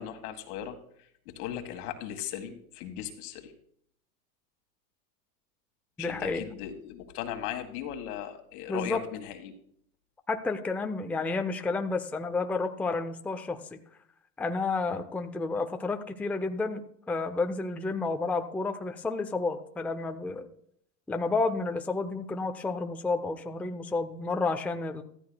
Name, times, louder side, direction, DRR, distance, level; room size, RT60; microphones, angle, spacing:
voice 1, 0.0-3.5 6.0-9.5, left 10 dB, 70° left, 7 dB, 1.7 m, -38 dB
voice 2, 6.0-6.4 8.7-9.0 10.3-13.8 14.4-16.8 17.1-20.5 21.1-25.0, left 3 dB, 5° left, 6 dB, 0.5 m, -31 dB
13.5 x 13.5 x 2.3 m, 0.69 s
supercardioid pair, 105°, 46 cm